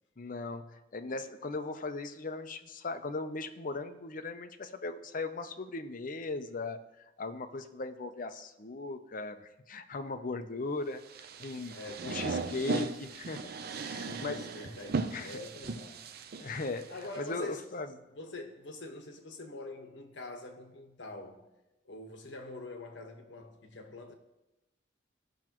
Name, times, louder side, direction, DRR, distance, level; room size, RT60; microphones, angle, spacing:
voice 1, 0.2-11.0 11.4-11.8 12.0-13.5 13.8-14.6 15.1-15.4 16.4-17.9, left 3 dB, 45° left, 0.6 m, -38 dB
sound 1, 11.1-17.2, right 4 dB, 55° right, 0.5 m, -37 dB
voice 2, 11.7-12.8 14.0-16.1 16.9-17.7 18.1-21.5 21.8-24.1, left 2 dB, 75° left, 1.2 m, -45 dB
16.0 x 6.1 x 3.0 m
head